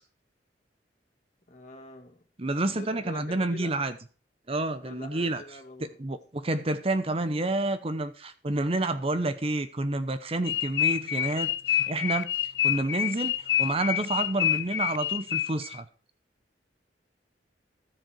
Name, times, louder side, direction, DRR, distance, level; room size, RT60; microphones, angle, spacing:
voice 1, 1.5-2.2 2.6-3.7 4.8-6.2, left 1 dB, 45° left, 2.6 m, -44 dB
voice 2, 2.4-3.9 4.5-5.4 6.0-12.3 12.6-15.8, right 2 dB, 35° right, 0.8 m, -29 dB
sound 1, 10.5-15.8, left 10 dB, 85° left, 0.7 m, -27 dB
13.5 x 7.6 x 4.6 m
head